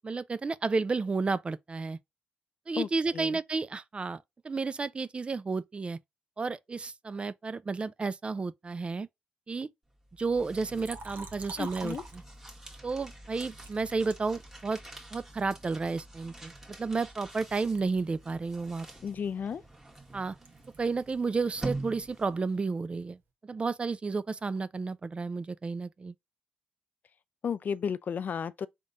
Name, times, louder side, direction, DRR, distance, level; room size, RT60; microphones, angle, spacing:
voice 1, 0.0-2.0 2.7-6.0 6.4-9.1 9.5-9.7 10.2-12.0 12.8-14.8 15.1-16.5 16.8-18.9 20.1-20.4 20.8-26.1, right 4 dB, 30° right, 0.4 m, -32 dB
sound 1, 10.0-22.5, right 2 dB, 10° right, 1.4 m, -45 dB
Liquid, 10.7-12.7 13.5-15.1 15.6-17.4 17.6-21.3 21.6-23.2, right 3 dB, 60° right, 1.0 m, -50 dB
voice 2, 11.6-12.0 19.0-19.6 27.4-28.7, left 7 dB, 50° left, 0.4 m, -33 dB
3.7 x 3.6 x 2.6 m
cardioid pair, 70°, 4 cm